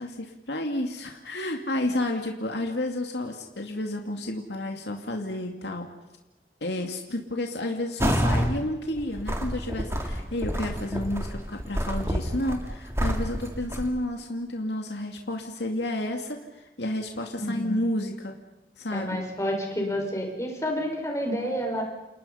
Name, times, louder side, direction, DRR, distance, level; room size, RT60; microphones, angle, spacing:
voice 1, 0.0-5.9 6.6-18.4 18.8-19.2, left 1 dB, 70° left, 3 dB, 2.3 m, -31 dB
sound 1, 8.0-8.5 9.0-13.9, equal, 15° right, 2.7 m, -28 dB
voice 2, 17.4-17.7 18.9-21.8, equal, 15° left, 0 dB, 5.9 m, -29 dB
29.0 x 29.0 x 5.7 m, 1.0 s
head